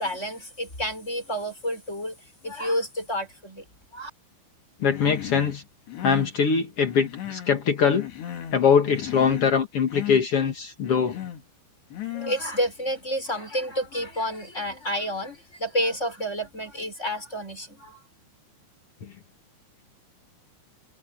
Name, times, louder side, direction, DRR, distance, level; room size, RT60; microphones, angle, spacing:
voice 1, 0.0-2.2 2.4-3.6 3.9-4.1 12.1-18.0, equal, 15° left, 5.6 m, -30 dB
voice 2, 4.8-5.6 6.0-8.1 8.5-11.2, left 6 dB, 85° left, 1.3 m, -22 dB
Human voice, 4.9-5.6 5.9-6.4 6.8-7.6 7.9-8.6 8.9-9.6 9.9-10.2 10.8-11.4 11.9-12.4, left 12 dB, 60° left, 5.3 m, -36 dB
omnidirectional pair, 5.6 m